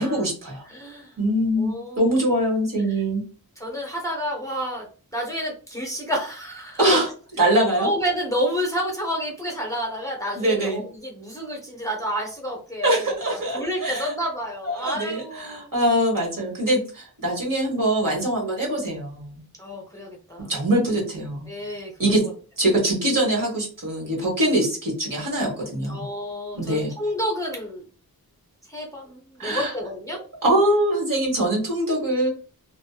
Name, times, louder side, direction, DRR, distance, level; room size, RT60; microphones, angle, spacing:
voice 1, 0.0-0.6 1.2-3.2 6.8-7.1 7.4-7.9 10.3-10.8 12.8-14.2 14.6-19.4 20.5-22.2 22.6-26.1 26.5-26.9 29.4-29.7 30.1-32.3, right 1 dB, 60° right, -2 dB, 1.3 m, -23 dB
voice 2, 0.7-1.1 1.6-2.1 3.6-4.9 5.1-6.8 7.8-15.7 19.6-20.5 21.5-22.1 25.9-27.8 28.7-30.2, equal, 10° left, -1 dB, 0.7 m, -30 dB
2.5 x 2.2 x 2.3 m, 0.38 s
wide cardioid pair, 125°, 38 cm